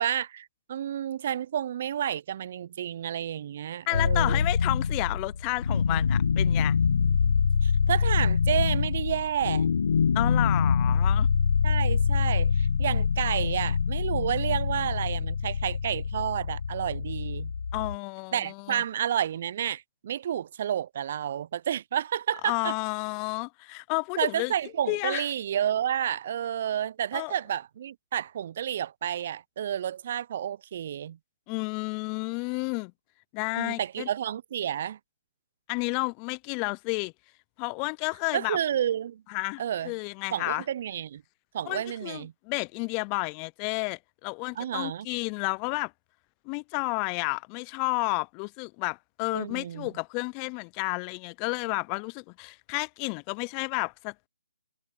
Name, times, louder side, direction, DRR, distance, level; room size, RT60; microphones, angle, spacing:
voice 1, 0.0-4.5 7.6-9.8 11.6-17.5 18.3-22.7 24.2-31.2 33.6-35.0 38.3-39.2 39.6-39.9 40.3-41.2 41.5-42.3 44.6-45.1 49.3-49.9, right 10 dB, 45° right, 0.6 m, -30 dB
sound 1, 3.9-18.0, left 6 dB, 60° left, 1.5 m, -25 dB
voice 2, 3.9-6.8 10.1-11.3 17.7-18.8 22.4-24.5 24.9-25.3 27.1-27.3 31.5-32.9 33.3-34.1 35.7-37.1 37.6-38.6 39.3-40.6 41.7-45.9 46.5-54.3, left 35 dB, 25° left, 0.5 m, -31 dB
figure-of-eight pair, 145°, 0 cm